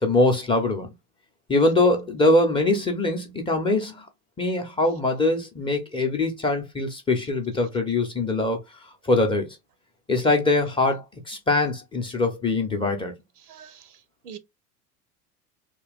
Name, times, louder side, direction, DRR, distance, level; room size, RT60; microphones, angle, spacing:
voice 1, 0.0-0.9 1.5-4.1 4.4-8.6 9.0-9.5 10.1-13.1, left 2 dB, 10° left, 0.6 m, -23 dB
voice 2, 13.5-13.9 14.2-14.4, right 8 dB, 80° right, 0.6 m, -42 dB
3.0 x 2.2 x 3.3 m
figure-of-eight pair, 80°, 45 cm